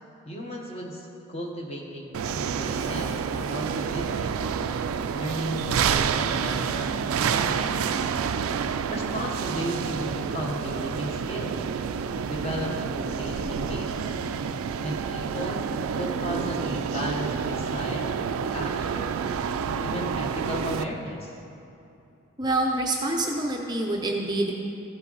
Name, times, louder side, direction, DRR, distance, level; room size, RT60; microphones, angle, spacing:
voice 1, 0.3-4.4 5.1-8.0 8.9-11.6 12.2-14.2 14.8-15.6 15.9-18.2 18.5-19.2 19.6-21.4, equal, 30° left, 0 dB, 1.0 m, -35 dB
sound 1, 2.1-20.8, right 6 dB, 80° right, 0.3 m, -28 dB
voice 2, 22.4-24.5, right 2 dB, 20° right, 0 dB, 0.5 m, -26 dB
14.5 x 5.6 x 4.0 m, 2.8 s
head